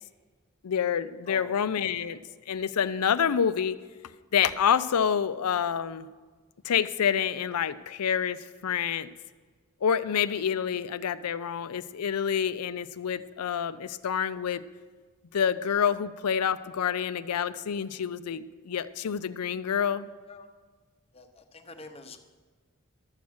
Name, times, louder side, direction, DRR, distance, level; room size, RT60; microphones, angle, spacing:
voice 1, 0.6-2.2 2.5-3.8 4.3-6.1 6.6-9.1 9.8-14.6 15.3-20.1, left 8 dB, 85° left, 14 dB, 0.5 m, -27 dB
voice 2, 1.3-1.6 12.8-12.9 16.3-16.5 20.3-20.5 21.1-22.2, left 3 dB, 25° left, 6 dB, 0.8 m, -46 dB
12.5 x 7.2 x 6.2 m, 1.4 s
head